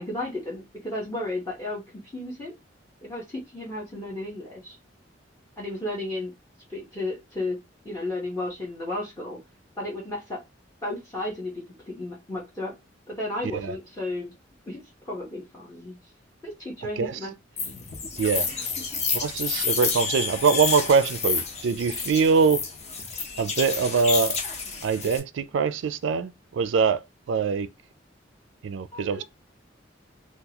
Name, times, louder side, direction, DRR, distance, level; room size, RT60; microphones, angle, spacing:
voice 1, 0.0-1.8 2.1-2.5 3.0-4.8 5.6-6.3 6.7-7.6 7.8-9.4 9.8-10.4 10.8-12.7 13.1-14.3 14.7-16.0 16.4-17.7 18.5-18.7 28.9-29.2, left 1 dB, 20° left, 1.0 m, -33 dB
sound 1, 17.6-25.2, left 5 dB, 35° left, 0.7 m, -30 dB
voice 2, 18.2-18.5 19.1-22.6 23.4-24.4 24.8-27.7 28.6-29.2, right 5 dB, 85° right, 0.4 m, -23 dB
3.7 x 2.3 x 2.8 m
head